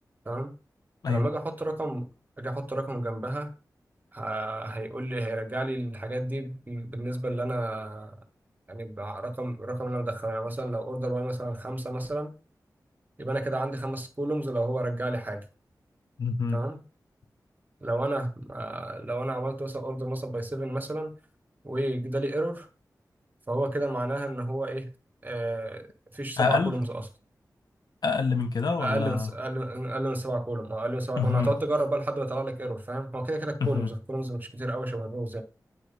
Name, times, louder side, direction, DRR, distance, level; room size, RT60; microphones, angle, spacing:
voice 1, 1.1-2.1 2.4-3.5 4.1-8.1 8.7-12.3 13.2-15.4 16.5-16.8 17.8-21.1 21.6-22.7 23.5-24.9 25.2-25.9 26.1-26.9 28.8-35.4, right 1 dB, 25° right, 1.4 m, -31 dB
voice 2, 16.2-16.6 26.4-26.8 28.0-29.3 31.2-31.5 33.6-33.9, left 4 dB, 80° left, 1.0 m, -26 dB
9.5 x 3.2 x 5.4 m
wide cardioid pair, 100°, 7 cm